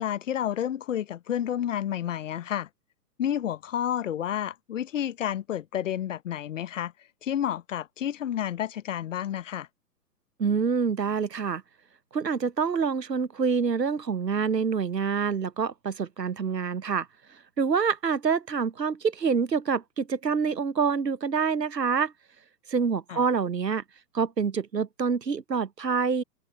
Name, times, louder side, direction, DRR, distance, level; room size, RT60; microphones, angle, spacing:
voice 1, 0.0-2.7 3.2-6.9 7.2-9.7 23.1-23.2, left 10 dB, 50° left, 0.9 m, -30 dB
voice 2, 10.4-11.6 12.1-17.1 17.6-22.1 22.7-23.8 24.1-26.2, right 6 dB, 85° right, 0.9 m, -26 dB
figure-of-eight pair, 115°, 48 cm